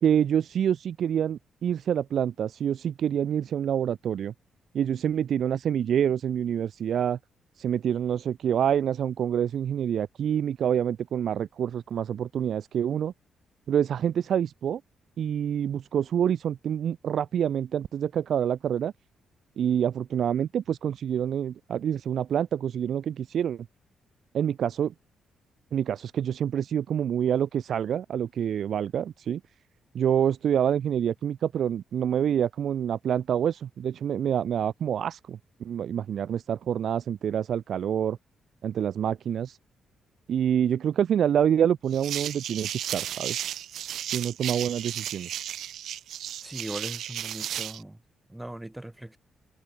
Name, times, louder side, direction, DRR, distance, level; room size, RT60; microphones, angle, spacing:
voice 1, 0.0-4.3 4.7-7.2 7.6-13.1 13.7-14.8 15.2-18.9 19.6-23.7 24.3-24.9 25.7-29.4 29.9-38.2 38.6-39.6 40.3-43.4 44.1-45.3, right 9 dB, 60° right, 0.4 m, -27 dB
sound 1, 41.9-47.8, right 11 dB, 75° right, 1.0 m, -34 dB
voice 2, 46.4-48.0 48.3-49.2, right 1 dB, 5° right, 4.6 m, -39 dB
cardioid pair, 130°, 0 cm